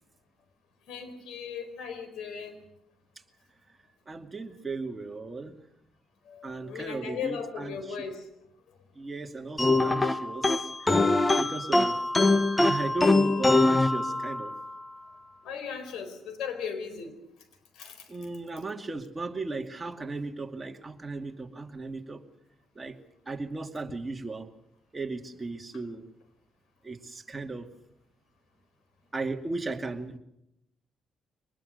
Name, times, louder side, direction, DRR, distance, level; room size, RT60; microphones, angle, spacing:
voice 1, 0.9-2.6 6.3-8.3 15.4-17.1 17.7-18.1, left 6 dB, 85° left, 10 dB, 4.4 m, -37 dB
voice 2, 4.1-5.5 6.4-8.0 9.0-10.5 10.8-11.1 11.4-11.9 12.6-14.5 18.1-22.2 22.8-22.9 23.3-24.5 24.9-26.0 26.8-27.6 29.1-30.2, right 3 dB, 20° right, 3 dB, 2.4 m, -36 dB
sound 1, 9.6-14.6, left 2 dB, 20° left, 1.2 m, -23 dB
24.5 x 20.0 x 6.6 m, 0.80 s
cardioid pair, 90°, 0 cm